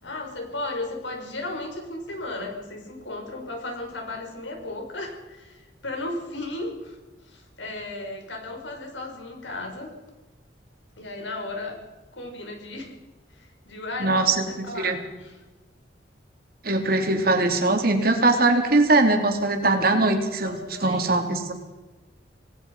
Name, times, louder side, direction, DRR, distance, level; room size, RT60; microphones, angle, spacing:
voice 1, 0.0-7.0 7.3-9.9 11.0-11.8 12.1-12.9 13.4-15.4 20.4-21.2, left 2 dB, 90° left, 3 dB, 5.9 m, -35 dB
voice 2, 14.0-14.4 14.8-15.0 16.6-21.5, right 2 dB, 55° right, 4 dB, 3.3 m, -21 dB
27.5 x 19.0 x 5.7 m, 1.1 s
head